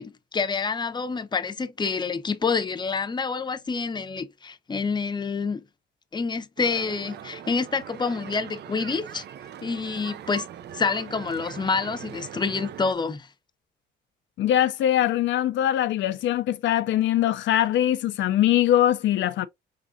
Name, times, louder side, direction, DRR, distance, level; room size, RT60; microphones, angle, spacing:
voice 1, 0.0-5.6 6.1-9.2 9.6-10.5 10.7-13.3, left 4 dB, 20° left, 0.6 m, -27 dB
sound 1, 6.6-12.9, right 10 dB, 60° right, 0.5 m, -41 dB
voice 2, 14.4-19.5, left 12 dB, 70° left, 0.5 m, -22 dB
5.0 x 3.7 x 2.6 m
cardioid pair, 90°, 20 cm